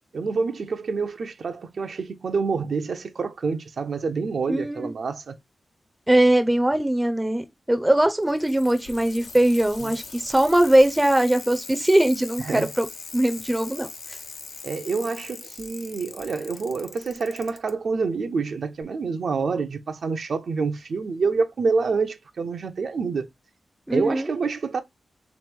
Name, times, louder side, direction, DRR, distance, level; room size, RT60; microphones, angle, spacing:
voice 1, 0.1-5.4 9.8-9.9 12.5-12.7 14.6-23.3 23.9-24.8, right 4 dB, 65° right, 0.5 m, -27 dB
voice 2, 4.5-4.9 6.1-12.9 13.1-13.9 23.9-24.3, right 1 dB, 10° right, 0.5 m, -21 dB
Bicycle, 8.1-17.7 18.8-18.9, left 4 dB, 65° left, 0.6 m, -41 dB
3.4 x 3.0 x 3.3 m
wide cardioid pair, 125°, 0 cm